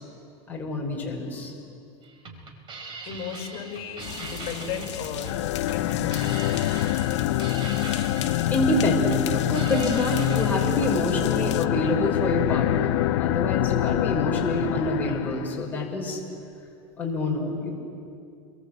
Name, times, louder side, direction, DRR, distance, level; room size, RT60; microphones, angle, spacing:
voice 1, 0.5-1.5 8.5-16.2 17.0-17.7, left 1 dB, 10° left, -3 dB, 5.8 m, -27 dB
sound 1, 2.0-10.9, right 3 dB, 35° right, 4.1 m, -41 dB
voice 2, 3.0-5.3 5.7-6.5, left 7 dB, 45° left, 4 dB, 6.1 m, -35 dB
sound 2, 4.0-11.7, left 10 dB, 85° left, 1.4 m, -37 dB
sound 3, 5.2-15.7, left 15 dB, 70° left, 0.7 m, -25 dB
29.5 x 23.0 x 8.1 m, 2.5 s
supercardioid pair, 135°, 15 cm